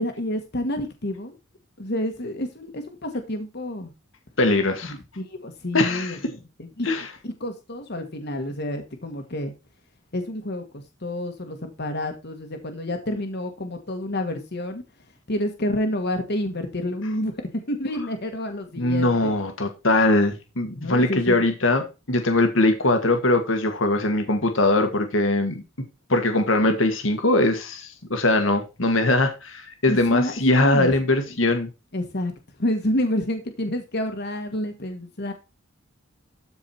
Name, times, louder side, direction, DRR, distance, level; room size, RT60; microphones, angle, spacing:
voice 1, 0.0-1.3 1.8-3.9 5.2-6.9 7.2-9.5 10.1-14.8 15.3-17.3 17.7-19.3 20.8-21.5 29.9-30.9 31.9-32.3 32.6-35.3, left 1 dB, 55° left, 1.5 m, -29 dB
voice 2, 4.4-4.9 5.7-6.2 6.8-7.1 18.8-25.6 26.1-31.7, left 2 dB, 70° left, 1.6 m, -21 dB
13.0 x 4.8 x 4.3 m
head